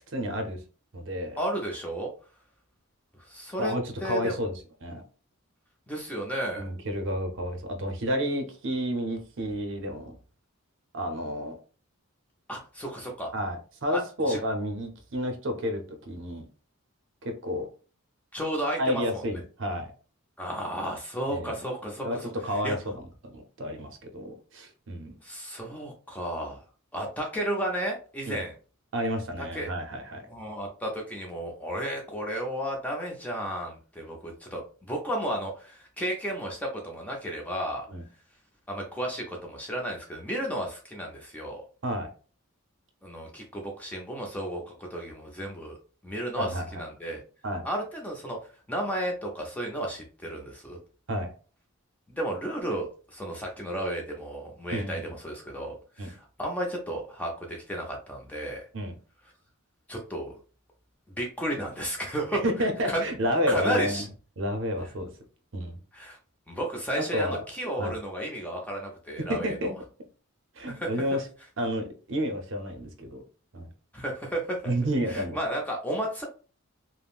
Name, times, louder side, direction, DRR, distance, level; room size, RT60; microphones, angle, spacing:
voice 1, 0.1-0.6 0.9-1.4 3.6-4.5 4.8-5.0 6.5-10.1 10.9-11.6 13.3-16.5 17.2-17.7 18.8-19.9 21.3-21.5 22.0-23.0 23.3-25.1 28.3-28.4 28.9-30.2 37.9-38.0 41.8-42.1 46.3-46.8 47.4-47.6 51.1-51.3 54.7-55.2 56.0-56.1 58.7-59.0 62.3-64.1 64.4-65.1 65.5-65.8 67.1-67.4 67.8-67.9 69.3-69.7 70.6-71.3 71.6-73.2 73.5-73.7 74.6-75.4, equal, 55° right, 6 dB, 0.6 m, -30 dB
voice 2, 1.4-2.1 3.3-3.7 4.0-4.4 5.9-6.6 12.5-13.3 13.9-14.0 14.3-14.4 18.3-19.2 20.4-22.3 22.6-22.8 25.2-26.6 26.9-28.5 29.5-29.7 30.3-37.9 38.7-41.6 43.0-45.8 46.0-46.5 46.8-47.2 47.6-48.4 48.7-50.8 52.1-58.6 59.9-60.3 61.1-63.0 63.5-64.1 65.9-66.2 66.5-69.7 70.7-70.9 73.9-74.6 75.1-76.2, right 1 dB, 5° left, 0 dB, 0.5 m, -33 dB
3.4 x 2.0 x 2.4 m, 0.37 s
head